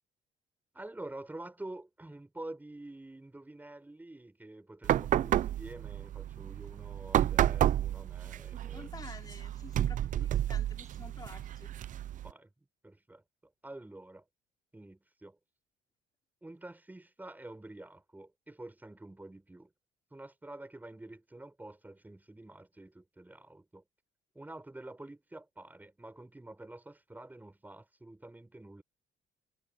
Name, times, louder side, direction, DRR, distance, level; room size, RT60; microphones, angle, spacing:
voice 1, 0.7-8.9 10.2-10.3 12.2-12.5 12.8-13.2 13.6-14.2 14.7-15.4 16.4-19.7 20.1-23.8 24.4-28.8, right 2 dB, 10° right, 6.9 m, -48 dB
sound 1, 4.8-12.3, right 12 dB, 50° right, 0.6 m, -31 dB
voice 2, 8.7-11.7, left 4 dB, 25° left, 4.0 m, -49 dB
cardioid pair, 110°, 17 cm